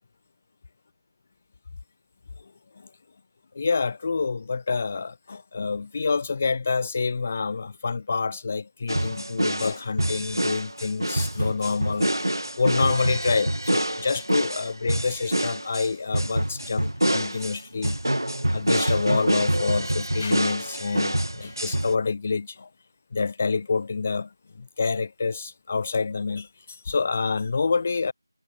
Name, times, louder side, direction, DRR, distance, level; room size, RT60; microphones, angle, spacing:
voice 1, 3.5-12.1 12.6-18.0 18.5-22.7 23.1-24.3 24.6-28.1, left 4 dB, 25° left, 5.8 m, -27 dB
sound 1, 8.9-21.9, right 1 dB, 70° right, 4.6 m, -26 dB
figure-of-eight pair, 170°, 2 cm